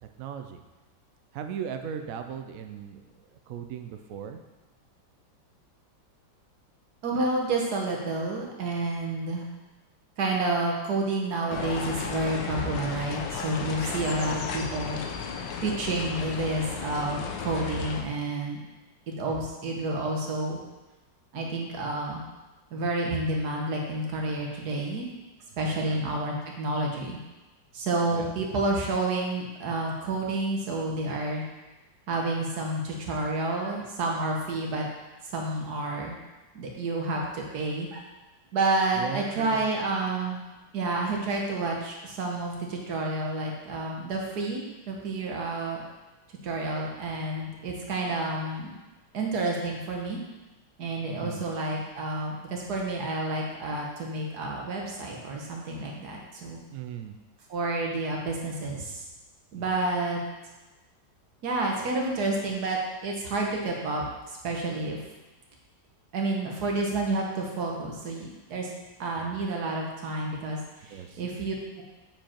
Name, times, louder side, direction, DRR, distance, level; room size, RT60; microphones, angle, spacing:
voice 1, 0.0-0.6 1.3-4.4 13.8-14.1 25.6-26.0 28.1-28.3 38.9-39.7 51.1-51.5 56.7-57.2 59.5-59.9 69.2-69.5 70.9-71.2, right 8 dB, 85° right, 6 dB, 0.7 m, -38 dB
voice 2, 7.0-9.5 10.2-15.0 15.6-18.6 19.1-20.6 21.3-22.2 22.7-25.1 25.6-27.2 27.7-31.4 32.1-34.9 35.3-36.1 36.6-38.0 38.5-40.4 40.7-45.8 46.4-48.7 49.1-50.2 50.8-56.6 57.5-59.0 59.5-60.2 61.4-65.0 66.1-68.7 69.0-71.8, right 2 dB, 60° right, 0 dB, 1.7 m, -29 dB
sound 1, 11.5-18.0, left 6 dB, 75° left, 1.4 m, -34 dB
7.6 x 5.0 x 4.4 m, 1.1 s
omnidirectional pair, 2.1 m